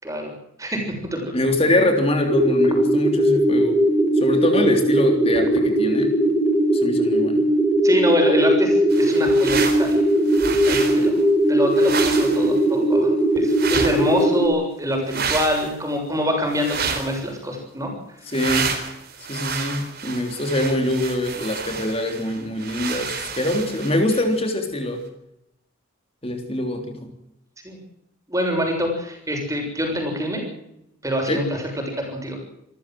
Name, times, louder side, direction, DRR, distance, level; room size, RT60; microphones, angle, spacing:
voice 1, 0.6-1.4 7.8-10.0 10.7-11.1 11.5-17.9 27.6-27.8 28.3-30.4 31.0-31.6 32.0-32.4, equal, 15° right, 2 dB, 6.8 m, -25 dB
voice 2, 1.3-3.8 4.2-6.1 6.7-7.4 18.3-18.8 19.3-25.0 26.2-26.9 31.3-31.4, left 1 dB, 25° left, 5 dB, 3.4 m, -23 dB
sound 1, 2.3-14.5, right 1 dB, 5° left, 5.3 m, -19 dB
sound 2, 8.9-10.0 10.2-11.1 11.7-12.6 13.5-14.2 15.1-15.7 16.5-17.2 18.3-24.3, right 5 dB, 45° right, 4.3 m, -29 dB
27.0 x 14.5 x 7.8 m, 0.82 s
head